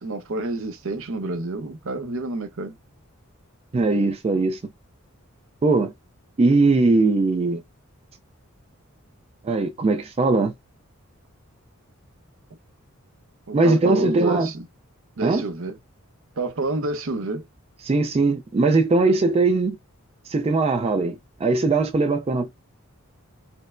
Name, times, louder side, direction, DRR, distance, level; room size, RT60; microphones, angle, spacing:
voice 1, 0.0-2.8 13.5-14.7 15.2-15.8 16.4-17.5, right 2 dB, 65° right, 0.7 m, -29 dB
voice 2, 3.7-4.6 5.6-5.9 6.4-7.6 9.4-10.5 13.5-14.5 15.2-15.4 17.8-19.8 20.3-22.5, right 3 dB, 30° right, 0.3 m, -20 dB
4.4 x 2.0 x 2.4 m
head